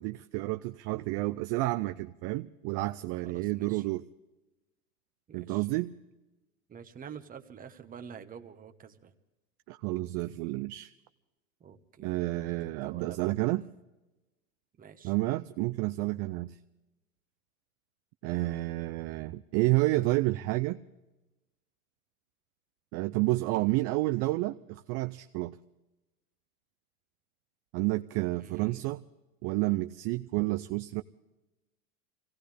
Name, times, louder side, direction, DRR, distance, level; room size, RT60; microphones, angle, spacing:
voice 1, 0.0-4.0 5.3-5.9 9.7-10.9 12.0-13.6 15.0-16.6 18.2-20.8 22.9-25.6 27.7-29.0 29.4-31.0, right 20 dB, 40° right, 10 dB, 0.5 m, -30 dB
voice 2, 3.2-3.8 5.3-5.6 6.7-9.1 11.6-12.1 12.6-13.3 14.8-15.1 28.4-28.9, right 7 dB, 20° right, 7 dB, 1.1 m, -48 dB
24.0 x 17.5 x 3.4 m, 1.0 s
supercardioid pair, 130°, 44 cm